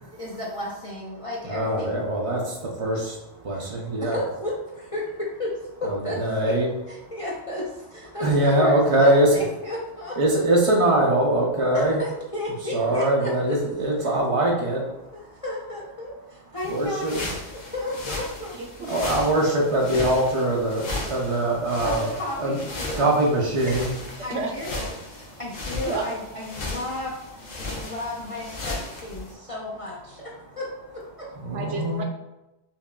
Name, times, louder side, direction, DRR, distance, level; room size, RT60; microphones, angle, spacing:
voice 1, 0.0-2.1 3.5-3.7 4.0-6.2 6.9-10.2 11.7-13.6 15.1-17.2 17.5-18.6 21.8-23.1 24.2-24.9 25.1-31.3, left 1 dB, 40° left, -5 dB, 0.5 m, -33 dB
voice 2, 1.4-4.2 5.8-6.7 7.0-7.1 8.2-9.4 10.2-12.0 12.7-15.4 16.7-17.3 18.9-22.0 22.4-22.6 23.0-23.9 25.2-25.4 27.6-27.9 29.2-29.3 31.4-32.0, right 1 dB, 55° right, -2 dB, 0.3 m, -23 dB
sound 1, 16.6-29.3, left 2 dB, 90° left, 1.2 m, -36 dB
voice 3, 18.6-18.9 24.3-24.5 25.8-26.0 31.5-32.0, right 4 dB, 75° right, 2 dB, 1.0 m, -31 dB
5.6 x 2.4 x 2.2 m, 0.95 s
omnidirectional pair, 1.3 m